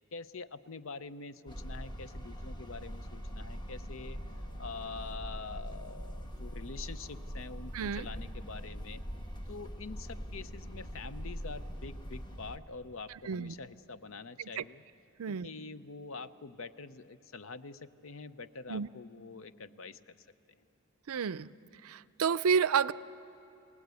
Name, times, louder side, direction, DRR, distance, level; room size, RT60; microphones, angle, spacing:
voice 1, 0.1-9.0 9.5-14.8 15.3-20.3, left 4 dB, 70° left, 13 dB, 0.6 m, -45 dB
sound 1, 1.5-12.6, equal, 20° left, 1.2 m, -42 dB
voice 2, 7.7-8.1 13.3-13.5 14.4-14.6 15.2-15.5 18.7-18.9 21.1-21.5 21.8-22.9, right 6 dB, 85° right, 17 dB, 0.5 m, -30 dB
29.0 x 18.0 x 8.2 m, 2.9 s
head